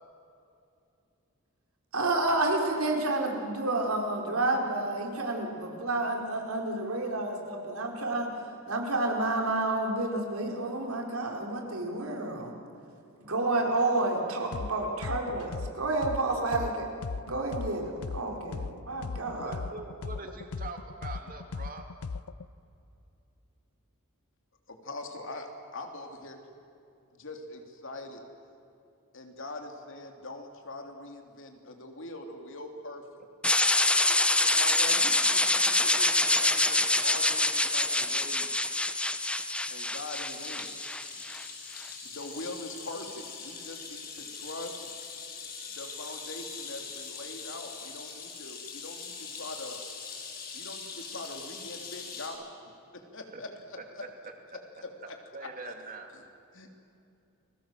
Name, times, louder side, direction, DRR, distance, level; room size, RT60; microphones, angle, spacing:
voice 1, 1.9-8.3 8.7-12.6 13.2-16.9 17.3-19.6, right 2 dB, 80° right, 1 dB, 4.4 m, -30 dB
sound 1, 14.5-14.7 15.0-18.7 19.0-22.4, left 4 dB, 85° left, 0.6 m, -37 dB
voice 2, 19.4-21.8 53.3-53.4 54.0-54.3 55.3-56.1, right 3 dB, 40° right, 4 dB, 3.0 m, -43 dB
voice 3, 24.7-26.4 27.1-28.2 29.1-33.0 34.4-38.5 39.7-40.7 42.0-44.9 45.7-49.8 50.5-52.5 52.9-54.1 54.8-55.7 56.1-56.2 56.5-56.7, left 2 dB, 60° left, 4 dB, 3.2 m, -42 dB
sound 2, 33.4-41.5, left 2 dB, 5° left, 0.8 m, -26 dB
sound 3, 38.1-52.3, left 5 dB, 45° left, 7.3 m, -43 dB
30.0 x 22.0 x 7.6 m, 2.7 s
head